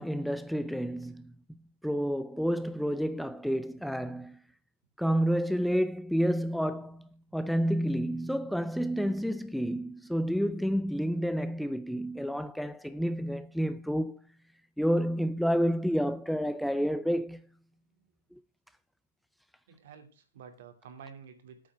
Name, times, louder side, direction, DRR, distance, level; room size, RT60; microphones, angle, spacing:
voice 1, 0.0-1.3 1.8-4.4 5.0-14.2 14.8-17.4, equal, ahead, 0.4 m, -29 dB
voice 2, 19.7-21.6, right 6 dB, 65° right, 2.6 m, -50 dB
8.8 x 5.8 x 7.9 m
hypercardioid pair, 125°, 0 cm